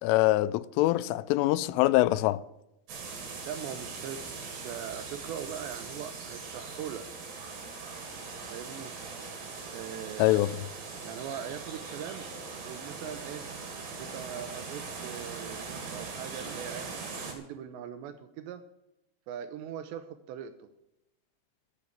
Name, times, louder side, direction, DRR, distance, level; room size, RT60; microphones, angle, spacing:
voice 1, 0.0-2.4 10.2-10.5, left 17 dB, 90° left, 3.2 m, -24 dB
sound 1, 2.9-17.3, right 4 dB, 50° right, 4.0 m, -41 dB
voice 2, 3.5-7.1 8.5-8.9 9.7-10.4 11.0-12.3 12.6-13.5 14.0-16.9 17.3-18.6 19.3-20.7, right 9 dB, 80° right, 2.7 m, -41 dB
13.5 x 7.9 x 8.8 m
omnidirectional pair, 5.6 m